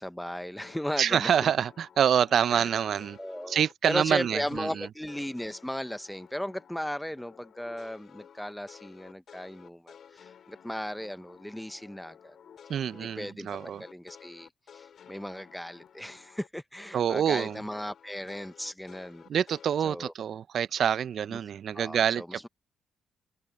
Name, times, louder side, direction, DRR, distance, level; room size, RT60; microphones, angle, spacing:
voice 1, 0.0-1.5 2.5-2.7 3.2-12.4 13.2-13.5 13.8-19.2 19.8-20.1 21.3-21.4 21.7-22.5, equal, 5° left, 0.9 m, -36 dB
sound 1, 0.6-6.9 7.2-16.5 16.8-19.8, left 8 dB, 60° left, 5.5 m, -53 dB
voice 2, 1.0-3.2 3.5-4.9 12.7-13.8 16.9-17.6 19.3-22.5, right 8 dB, 60° right, 0.5 m, -26 dB
cardioid pair, 90°, 0 cm